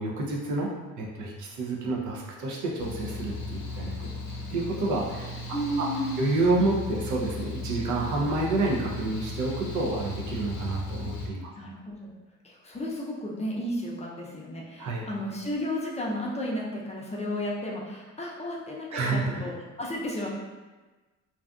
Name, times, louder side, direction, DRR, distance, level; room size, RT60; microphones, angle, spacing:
voice 1, 0.0-4.1 4.5-5.9 6.2-11.5 14.8-15.1 18.9-19.5, right 2 dB, 70° right, -2 dB, 0.6 m, -29 dB
Mechanical fan, 2.8-11.3, left 2 dB, 65° left, 0.6 m, -36 dB
voice 2, 5.5-6.2 11.6-12.1 12.4-19.5 19.8-20.3, equal, 20° left, -3 dB, 0.5 m, -33 dB
2.6 x 2.3 x 2.3 m, 1.3 s
cardioid pair, 90°, 30 cm